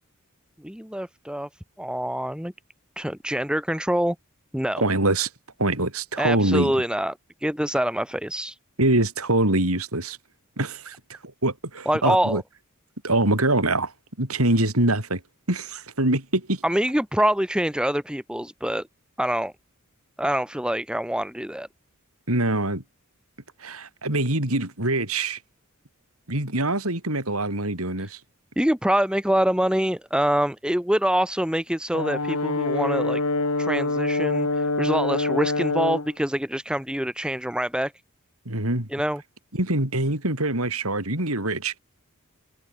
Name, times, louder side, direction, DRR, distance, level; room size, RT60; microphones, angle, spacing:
voice 1, 0.6-1.5 1.8-2.5 3.0-4.2 4.5-4.8 6.2-7.1 7.4-8.6 11.9-12.4 16.6-18.9 19.2-19.5 20.2-21.7 28.0-28.1 28.6-33.2 33.6-37.9 38.9-39.2, equal, 5° right, 2.1 m, -25 dB
voice 2, 4.8-5.3 5.6-6.7 8.8-10.2 10.6-12.4 13.0-13.9 14.2-15.2 15.5-16.6 22.3-22.8 23.6-25.4 26.3-28.2 38.5-38.9 39.5-41.8, right 2 dB, 85° right, 6.1 m, -24 dB
Brass instrument, 31.9-36.1, left 2 dB, 90° left, 3.7 m, -25 dB
head